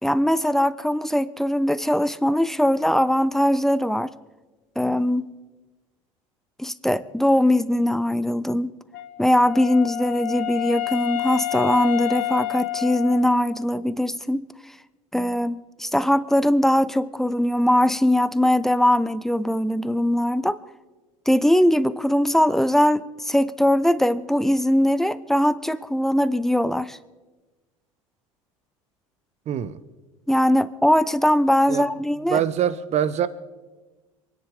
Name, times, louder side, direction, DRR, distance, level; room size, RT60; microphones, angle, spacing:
voice 1, 0.0-4.1 4.8-5.3 6.6-8.7 9.2-14.4 15.1-20.6 21.3-27.0 30.3-32.4, left 1 dB, ahead, 0.7 m, -21 dB
Wind instrument woodwind instrument, 8.9-13.7, left 16 dB, 55° left, 1.3 m, -29 dB
voice 2, 29.5-29.8 31.7-31.9 32.2-33.3, right 9 dB, 40° right, 1.0 m, -24 dB
27.0 x 10.5 x 3.8 m
figure-of-eight pair, 70°, 17 cm